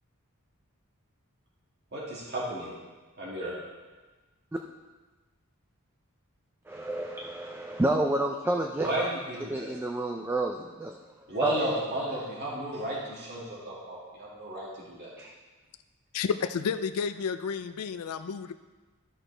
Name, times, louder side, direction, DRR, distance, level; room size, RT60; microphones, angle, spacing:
voice 1, 1.9-2.7 3.2-3.5 8.8-9.7 11.3-15.1, right 1 dB, 50° right, -6 dB, 2.2 m, -33 dB
voice 2, 6.7-8.9 9.5-11.0 11.4-11.5 15.2-15.3, right 2 dB, 10° right, 3 dB, 0.4 m, -29 dB
voice 3, 16.1-18.5, left 6 dB, 80° left, 10 dB, 0.4 m, -31 dB
13.5 x 6.1 x 3.3 m, 1.3 s
head